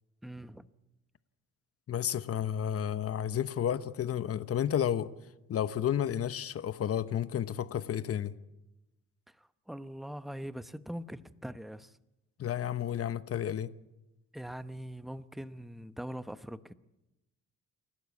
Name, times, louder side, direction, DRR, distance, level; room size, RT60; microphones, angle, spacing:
voice 1, 0.2-0.7 9.3-12.0 14.3-16.7, equal, ahead, 0.9 m, -42 dB
voice 2, 1.9-5.1 5.5-8.3 12.4-13.7, left 9 dB, 50° left, 1.0 m, -31 dB
29.0 x 12.5 x 8.3 m
cardioid pair, 90°, 30 cm